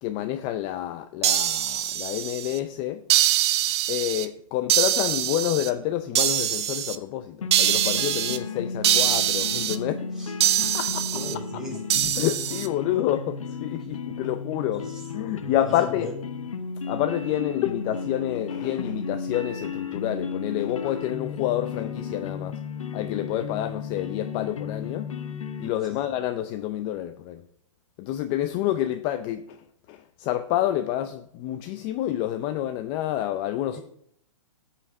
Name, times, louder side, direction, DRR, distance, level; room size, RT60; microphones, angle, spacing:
voice 1, 0.0-3.0 3.9-10.1 10.6-11.0 12.2-14.8 15.1-16.1 16.9-22.6 22.9-25.1 25.6-27.4 28.0-29.6 29.9-33.8, left 12 dB, 30° left, 0.6 m, -28 dB
sound 1, 1.2-2.6 3.1-4.3 4.7-5.7 6.1-7.0 7.5-8.4 8.8-9.8 10.4-11.3 11.9-12.7, right 11 dB, 55° right, 1.2 m, -23 dB
sound 2, 7.4-25.7, left 5 dB, 85° left, 1.3 m, -34 dB
voice 2, 11.0-11.8 14.7-16.2 25.9-26.1 33.7-33.8, right 1 dB, 5° right, 4.0 m, -39 dB
13.5 x 5.8 x 7.0 m
hypercardioid pair, 145°, 17 cm